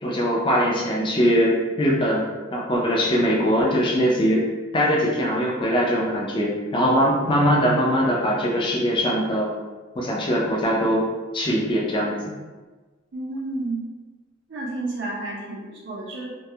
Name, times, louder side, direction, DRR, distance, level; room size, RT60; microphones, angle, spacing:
voice 1, 0.0-4.4 4.7-9.5 10.0-11.1 11.3-12.3, equal, 25° left, -3 dB, 0.4 m, -21 dB
voice 2, 13.1-13.8 14.5-16.3, right 2 dB, 60° right, -3 dB, 0.5 m, -31 dB
2.3 x 2.0 x 2.7 m, 1.3 s
head